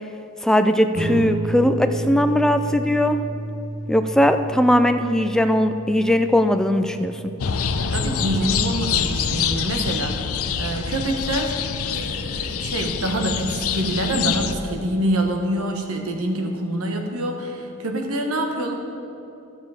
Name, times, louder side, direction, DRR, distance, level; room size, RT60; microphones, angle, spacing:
voice 1, 0.4-3.2 3.9-7.3, left 1 dB, 5° left, 8 dB, 0.3 m, -19 dB
sound 1, 0.9-11.7, right 2 dB, 30° right, 0.8 m, -32 dB
sound 2, 7.4-14.5, left 6 dB, 75° left, 0.5 m, -25 dB
voice 2, 7.9-11.6 11.9-18.7, right 1 dB, 80° right, 3 dB, 1.2 m, -26 dB
12.5 x 7.2 x 4.9 m, 2.8 s
head